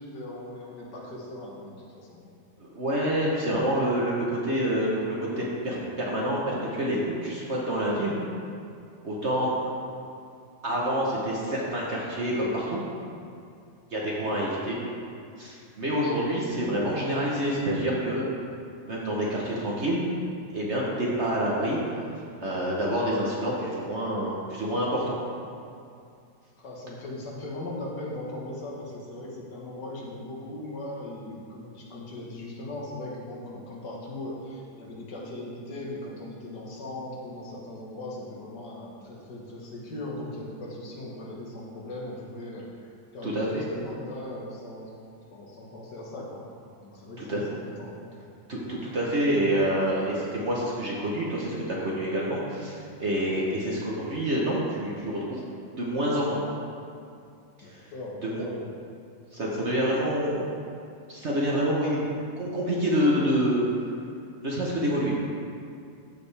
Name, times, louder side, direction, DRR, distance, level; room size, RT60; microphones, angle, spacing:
voice 1, 0.0-2.2 26.6-44.9 45.3-46.4 46.8-48.1 57.6-58.6, left 1 dB, 65° left, -3 dB, 1.9 m, -39 dB
voice 2, 2.6-8.1 9.0-9.6 10.6-12.8 13.9-14.8 15.4-18.2 18.8-20.1 20.5-21.8 22.4-25.2 43.2-43.7 47.2-47.4 48.5-55.4 55.8-56.4 57.6-57.8 58.2-58.4 59.3-60.5 61.1-62.1 62.4-63.6 64.4-65.3, equal, 45° right, -4 dB, 1.1 m, -27 dB
14.0 x 5.1 x 3.3 m, 2.4 s
omnidirectional pair, 2.0 m